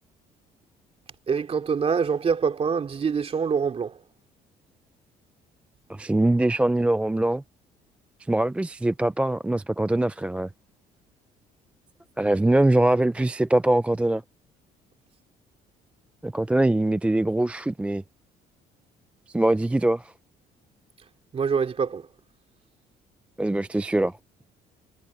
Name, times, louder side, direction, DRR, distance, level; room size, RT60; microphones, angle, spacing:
voice 1, 1.3-4.0 21.3-22.0, right 6 dB, 35° right, 2.7 m, -25 dB
voice 2, 5.9-7.4 8.3-10.5 12.2-14.2 16.2-18.0 19.3-20.1 23.4-24.1, right 1 dB, 5° right, 0.4 m, -22 dB
cardioid pair, 110°, 17 cm